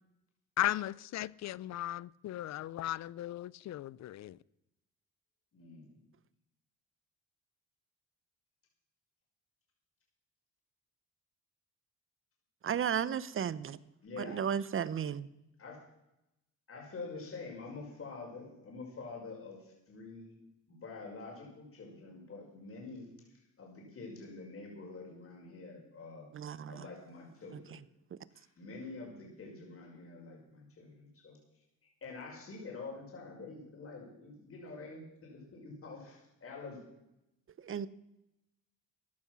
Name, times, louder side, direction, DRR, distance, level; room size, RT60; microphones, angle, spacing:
voice 1, 0.6-4.4, left 14 dB, 60° left, 0.5 m, -36 dB
voice 2, 5.5-6.0 14.0-14.4 15.6-15.8 16.7-20.4 20.7-26.3 26.7-27.8 28.3-31.4 32.0-36.8, left 3 dB, 45° left, 5.9 m, -47 dB
voice 3, 12.6-13.8 14.2-15.3 26.3-26.9 28.1-28.2 37.6-37.9, right 8 dB, 45° right, 0.8 m, -34 dB
15.0 x 11.5 x 6.2 m
cardioid pair, 90°, 30 cm